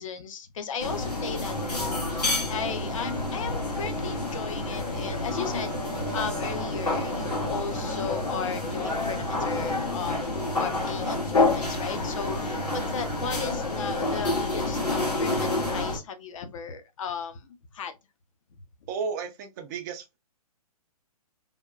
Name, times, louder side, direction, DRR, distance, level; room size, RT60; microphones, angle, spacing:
voice 1, 0.0-17.9, left 6 dB, 55° left, 0.7 m, -36 dB
sound 1, 0.8-16.0, left 2 dB, 90° left, 1.7 m, -28 dB
voice 2, 18.9-20.2, right 5 dB, 30° right, 0.4 m, -33 dB
3.4 x 2.3 x 2.5 m
hypercardioid pair, 130°, 20 cm